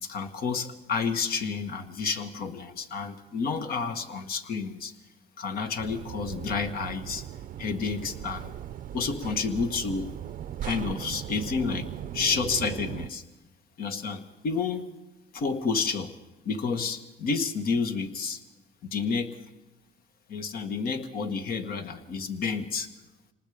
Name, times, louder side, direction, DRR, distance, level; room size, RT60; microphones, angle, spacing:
voice 1, 0.0-4.9 5.4-7.3 7.6-8.5 8.9-10.1 10.6-11.9 12.1-13.2 13.8-14.9 15.3-16.1 16.5-18.4 18.8-19.3 20.3-22.9, left 5 dB, 60° left, 8 dB, 1.8 m, -30 dB
sound 1, 5.8-13.1, right 11 dB, 50° right, 0.6 m, -38 dB
26.5 x 19.5 x 5.1 m, 1.1 s
cardioid pair, 110°, 17 cm